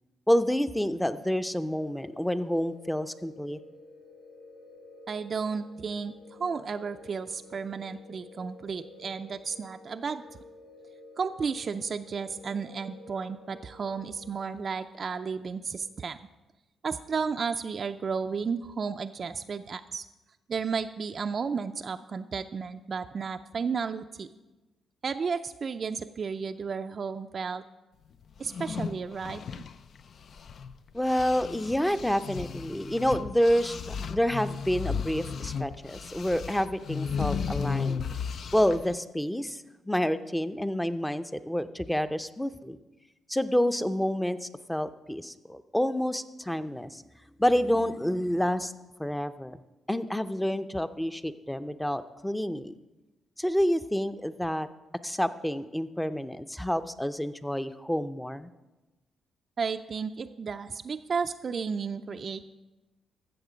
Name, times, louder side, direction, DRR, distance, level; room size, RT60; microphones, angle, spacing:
voice 1, 0.3-3.6 30.9-38.0 38.5-42.8 43.3-47.0 47.4-48.7 49.0-49.6 49.9-52.7 53.4-54.7 55.0-58.5, equal, 5° left, 12 dB, 0.6 m, -28 dB
sound 1, 1.6-14.3, left 2 dB, 80° left, 3.6 m, -51 dB
voice 2, 5.1-10.2 11.2-16.2 16.8-20.0 20.5-24.3 25.0-27.6 28.4-29.6 59.6-62.4, right 5 dB, 50° right, 7 dB, 0.4 m, -33 dB
sound 2, 28.4-30.7 31.0-38.9, left 6 dB, 60° left, 0.4 m, -35 dB
14.5 x 6.7 x 5.1 m, 1.1 s
supercardioid pair, 65°, 0 cm